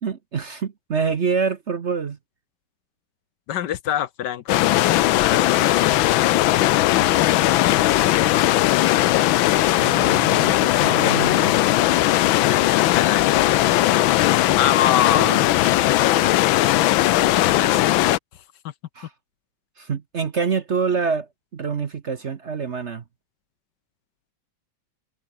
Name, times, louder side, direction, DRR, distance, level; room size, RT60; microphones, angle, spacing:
voice 1, 0.0-2.2 9.8-11.6 15.1-15.4 18.9-19.1 19.8-23.0, right 5 dB, 45° right, 1.1 m, -26 dB
voice 2, 3.5-6.9 7.6-8.5 12.4-13.5 14.5-15.4 17.3-18.0, left 10 dB, 65° left, 1.4 m, -27 dB
sound 1, 4.5-18.2, left 15 dB, 90° left, 1.5 m, -18 dB
omnidirectional pair, 2.1 m